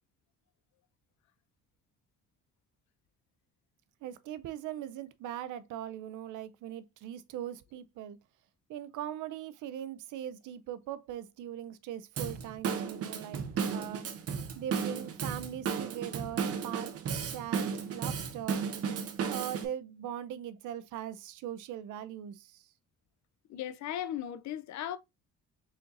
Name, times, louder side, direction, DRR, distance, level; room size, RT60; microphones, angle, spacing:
voice 1, 4.0-8.2 8.7-13.4 13.7-14.0 14.6-18.6 19.3-22.6, right 11 dB, 80° right, 0.5 m, -40 dB
Drum kit / Drum, 12.2-19.7, right 6 dB, 50° right, 0.8 m, -34 dB
voice 2, 23.5-25.0, left 11 dB, 65° left, 0.5 m, -37 dB
4.3 x 3.9 x 2.5 m
cardioid pair, 90°, 30 cm